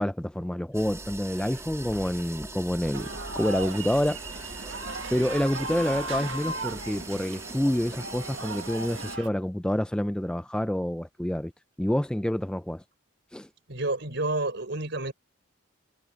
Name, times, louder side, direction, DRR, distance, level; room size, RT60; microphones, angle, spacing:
voice 1, 0.0-3.1 3.4-4.2 5.1-11.5 11.8-12.8 13.3-13.5, equal, 5° left, 0.4 m, -28 dB
sound 1, 0.7-9.2, right 2 dB, 15° right, 2.2 m, -41 dB
sound 2, 2.9-9.3, right 2 dB, 80° right, 1.6 m, -37 dB
voice 2, 13.7-15.1, right 2 dB, 65° right, 5.3 m, -30 dB
head